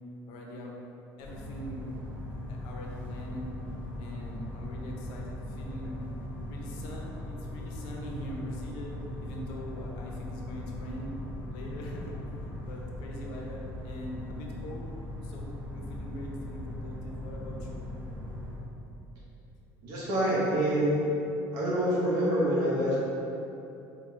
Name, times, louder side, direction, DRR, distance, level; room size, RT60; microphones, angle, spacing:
voice 1, 0.3-0.7 1.2-1.8 2.5-3.5 4.0-6.0 6.4-8.9 9.2-11.2 11.5-12.1 12.4-14.9 15.2-17.8, equal, 75° left, -1 dB, 0.6 m, -42 dB
sound 1, 1.2-18.6, left 1 dB, 20° right, 0.9 m, -39 dB
voice 2, 19.8-20.9 21.5-23.0, right 1 dB, 65° right, -7 dB, 0.9 m, -26 dB
4.2 x 2.2 x 3.2 m, 2.9 s
cardioid pair, 165°, 8 cm